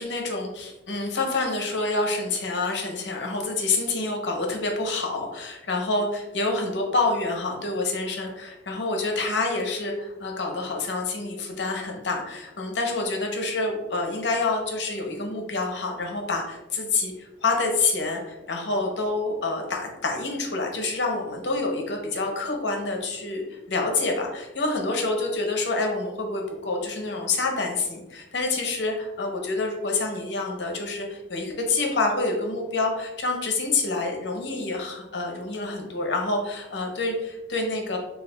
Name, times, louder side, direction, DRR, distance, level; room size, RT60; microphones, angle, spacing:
voice 1, 0.0-38.0, left 3 dB, 65° left, 2 dB, 0.7 m, -27 dB
6.4 x 2.4 x 2.2 m, 1.0 s
head